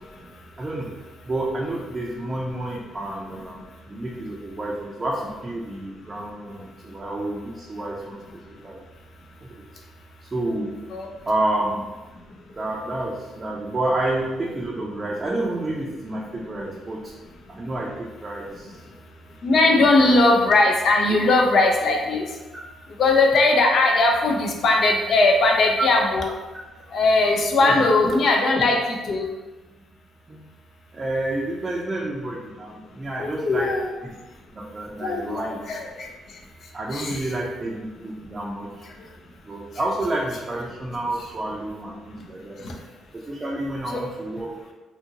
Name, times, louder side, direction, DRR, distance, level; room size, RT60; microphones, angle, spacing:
voice 1, 0.6-1.0 1.2-3.6 3.9-8.8 9.4-9.6 10.2-10.8 11.2-11.9 12.6-17.1 17.5-18.8 19.9-20.1 27.6-27.9 30.3-30.5 30.9-33.7 34.0-34.1 34.5-35.7 36.7-38.8 39.4-42.6 43.1-44.6, right 1 dB, 30° right, -4 dB, 0.5 m, -29 dB
voice 2, 19.4-22.2 23.0-26.3 26.9-29.3 33.2-33.9 35.0-36.1 36.9-37.3 42.6-42.7 43.9-44.0, left 2 dB, 60° left, 1 dB, 0.5 m, -19 dB
2.8 x 2.5 x 2.8 m, 1.2 s
cardioid pair, 90°, 0 cm